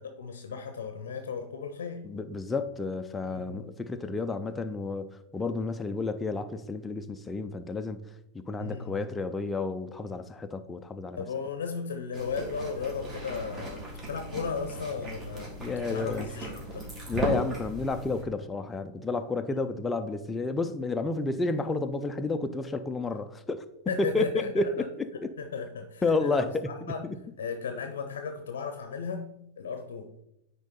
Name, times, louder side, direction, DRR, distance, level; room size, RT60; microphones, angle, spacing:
voice 1, 0.0-2.1 3.3-3.6 8.6-9.0 11.2-16.9 23.9-24.7 25.4-27.0 27.4-29.3 29.6-30.1, left 5 dB, 70° left, 0.7 m, -35 dB
voice 2, 2.0-8.0 8.3-11.2 15.6-16.3 17.1-23.6 24.0-25.1 26.0-26.7, left 3 dB, 15° left, 0.5 m, -31 dB
sound 1, 12.1-18.2, right 1 dB, 25° right, 2.5 m, -37 dB
9.5 x 3.7 x 4.3 m
figure-of-eight pair, 95°, 0 cm